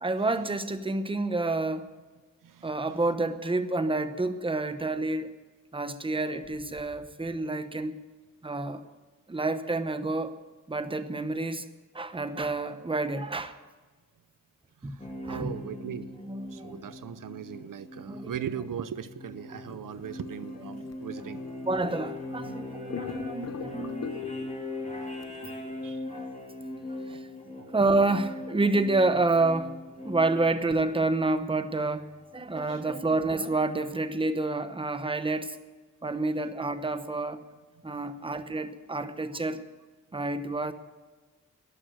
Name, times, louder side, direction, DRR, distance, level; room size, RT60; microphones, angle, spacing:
voice 1, 0.0-1.9 2.6-5.3 5.7-8.0 8.4-8.8 9.3-10.3 10.7-13.6 14.8-15.0 15.2-15.5 16.3-16.8 18.1-18.3 20.7-20.8 21.6-24.3 26.0-26.2 27.1-27.2 27.7-35.6 36.0-37.4 37.8-39.6 40.1-40.7, right 2 dB, 15° right, 0.9 m, -29 dB
voice 2, 2.4-2.8 14.8-16.1 16.5-21.4 24.7-25.3 25.8-26.0 27.1-27.2 27.5-27.7 32.6-32.8 37.9-38.1, right 9 dB, 90° right, 0.7 m, -40 dB
sound 1, 15.0-31.3 32.8-32.9, left 2 dB, 20° left, 3.2 m, -40 dB
sound 2, 19.5-22.5 22.9-24.6 25.2-25.4, left 7 dB, 55° left, 0.7 m, -43 dB
12.5 x 11.0 x 8.0 m
wide cardioid pair, 120°, 31 cm